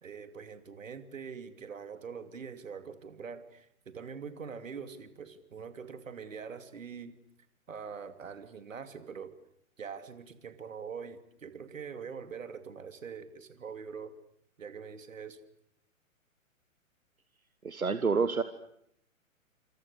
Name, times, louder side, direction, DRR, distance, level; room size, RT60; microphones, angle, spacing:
voice 1, 0.0-7.1 7.7-9.3 9.8-14.1 14.6-15.4, right 6 dB, 65° right, 10 dB, 2.8 m, -43 dB
voice 2, 17.6-18.4, right 5 dB, 85° right, 12 dB, 1.5 m, -28 dB
28.0 x 27.5 x 6.8 m, 0.71 s
figure-of-eight pair, 120°, 42 cm